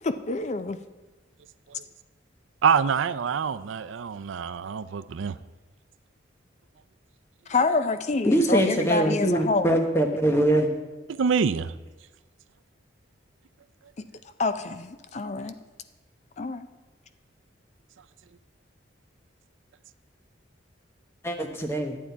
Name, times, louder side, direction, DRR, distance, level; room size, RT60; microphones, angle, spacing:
voice 1, 0.0-0.8 7.5-9.8 14.0-14.1 14.4-15.6 16.4-16.7, left 3 dB, 35° left, 11 dB, 0.4 m, -27 dB
voice 2, 2.6-5.3 11.1-11.7, right 6 dB, 85° right, 13 dB, 0.4 m, -25 dB
voice 3, 8.3-10.7 21.2-22.0, right 1 dB, 15° left, 4 dB, 1.0 m, -23 dB
11.5 x 8.5 x 4.5 m, 1.2 s
head